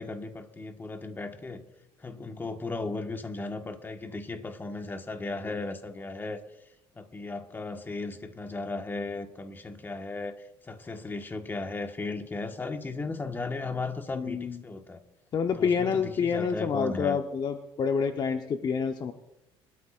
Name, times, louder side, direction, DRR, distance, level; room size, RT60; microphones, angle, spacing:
voice 1, 0.0-1.6 2.0-6.4 6.9-15.0 15.5-17.2, left 3 dB, 20° left, 5 dB, 1.5 m, -36 dB
voice 2, 14.1-14.6 15.3-19.1, left 6 dB, 40° left, 5 dB, 1.0 m, -28 dB
24.0 x 13.0 x 2.6 m, 0.92 s
cardioid pair, 110°, 10 cm